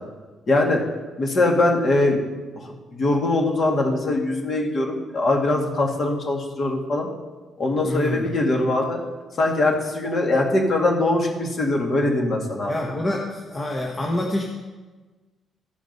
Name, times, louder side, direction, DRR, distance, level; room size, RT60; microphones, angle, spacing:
voice 1, 0.5-0.8 1.2-2.2 2.9-7.1 7.6-9.0 9.4-12.7, left 2 dB, 40° left, 1 dB, 1.9 m, -22 dB
voice 2, 7.8-8.3 12.7-14.4, left 1 dB, 25° left, -1 dB, 1.1 m, -26 dB
15.0 x 5.0 x 5.4 m, 1.3 s
cardioid pair, 135°, 0 cm